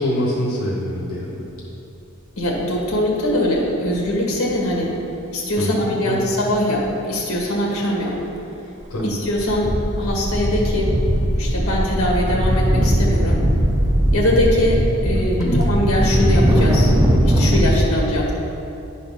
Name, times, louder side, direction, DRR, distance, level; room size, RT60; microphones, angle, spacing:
voice 1, 0.0-1.5 5.6-6.2 8.9-9.1 15.1-15.7, left 1 dB, 85° left, -3 dB, 1.3 m, -24 dB
voice 2, 2.4-4.9 5.3-8.2 9.0-9.7 10.0-10.9 11.3-13.4 14.1-16.9 17.3-18.3, left 1 dB, 70° left, -2 dB, 1.8 m, -22 dB
sound 1, 8.8-9.0 9.3-17.8, equal, 15° right, 0.5 m, -19 dB
10.0 x 4.3 x 5.5 m, 2.8 s
head